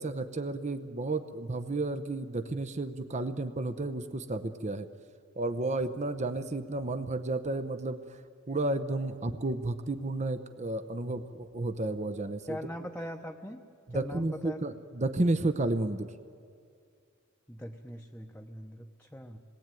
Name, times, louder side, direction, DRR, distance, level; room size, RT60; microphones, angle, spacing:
voice 1, 0.0-4.9 5.4-8.2 8.5-12.6 13.9-16.1, right 2 dB, 35° right, 9 dB, 0.8 m, -32 dB
voice 2, 12.5-13.6 13.9-14.7 17.5-19.4, equal, 5° left, 2 dB, 0.9 m, -41 dB
27.0 x 19.5 x 9.1 m, 2.3 s
head